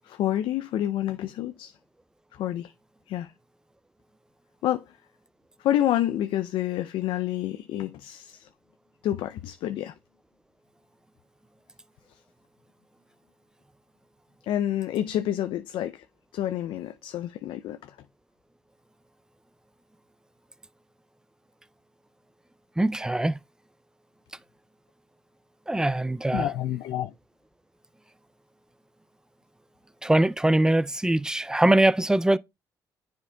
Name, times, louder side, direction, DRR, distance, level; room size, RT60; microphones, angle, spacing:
voice 1, 0.0-1.8 2.3-2.7 3.1-3.3 4.6-5.0 5.6-8.5 9.0-9.9 14.4-16.0 16.3-18.0 26.3-27.1, left 12 dB, 75° left, 0.4 m, -28 dB
voice 2, 22.8-23.4 25.7-26.5 30.0-32.4, right 1 dB, 10° right, 0.3 m, -22 dB
9.7 x 4.6 x 2.2 m
supercardioid pair, 60°, 9 cm